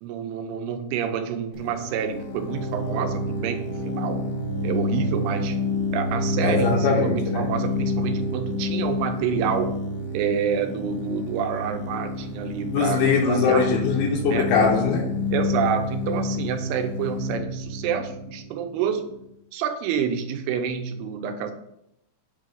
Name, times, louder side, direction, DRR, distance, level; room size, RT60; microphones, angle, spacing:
voice 1, 0.0-4.2 4.6-5.6 5.9-9.8 10.1-13.7 14.3-14.5 15.3-19.1 19.5-21.5, right 7 dB, 90° right, 7 dB, 2.7 m, -28 dB
sound 1, 1.6-19.1, left 2 dB, 65° left, 1.6 m, -29 dB
voice 2, 6.4-7.5 12.7-15.1, left 5 dB, 85° left, -1 dB, 2.6 m, -22 dB
8.3 x 3.2 x 3.8 m, 0.79 s
omnidirectional pair, 4.5 m